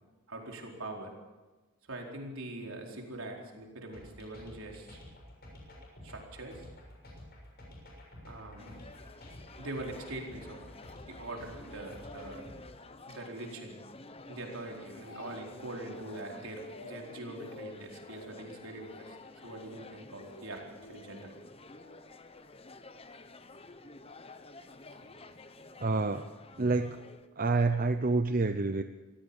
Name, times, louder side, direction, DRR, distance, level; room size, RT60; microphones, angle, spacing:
voice 1, 0.3-1.1 1.9-5.0 6.0-6.7 8.2-8.8 9.6-10.6 11.1-12.4 13.1-13.8 14.3-19.2 19.4-20.6 20.9-21.4, right 2 dB, 70° right, 1 dB, 4.5 m, -43 dB
sound 1, 3.9-12.6, left 1 dB, 45° left, 6.7 m, -50 dB
sound 2, 8.6-27.3, left 2 dB, 25° left, 1.0 m, -51 dB
Speech, 14.6-15.6 15.8-16.3 16.6-17.0 17.4-17.6 18.0-18.4 18.7-19.0 19.4-19.8 20.2-21.0 21.8-22.0, left 2 dB, 70° left, 4.2 m, -50 dB
voice 2, 25.8-26.3 26.6-27.0 27.4-28.8, right 3 dB, 40° right, 9 dB, 0.7 m, -28 dB
25.0 x 16.5 x 7.2 m, 1.3 s
head